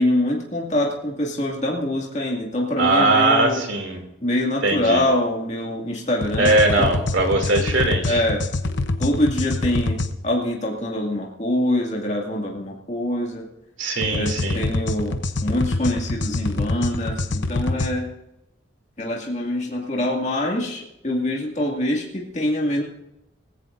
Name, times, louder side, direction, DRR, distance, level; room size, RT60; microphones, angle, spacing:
voice 1, 0.0-3.6 4.2-6.5 8.0-8.4 9.0-10.0 10.2-13.4 14.1-18.1 19.0-22.8, left 1 dB, 35° left, -2 dB, 2.2 m, -24 dB
voice 2, 2.8-4.0 4.6-5.0 6.4-8.2 13.8-14.6, right 2 dB, 75° right, 3 dB, 2.8 m, -20 dB
sound 1, 6.2-10.1 14.0-17.9, left 2 dB, 65° left, 0.9 m, -25 dB
19.0 x 16.0 x 2.6 m, 0.87 s
head